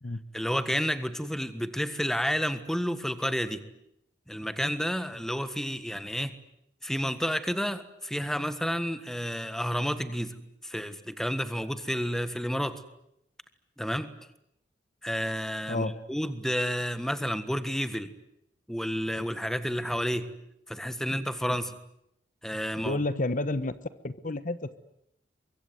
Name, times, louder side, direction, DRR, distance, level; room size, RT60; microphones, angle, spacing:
voice 1, 0.3-3.6 4.3-6.4 6.8-12.8 13.8-14.2 15.0-18.1 18.7-20.3 20.7-21.7 22.4-23.0, equal, 5° left, 12 dB, 1.6 m, -30 dB
voice 2, 22.8-23.7 24.0-24.8, left 2 dB, 50° left, 14 dB, 1.1 m, -30 dB
24.0 x 23.0 x 9.4 m, 0.78 s
head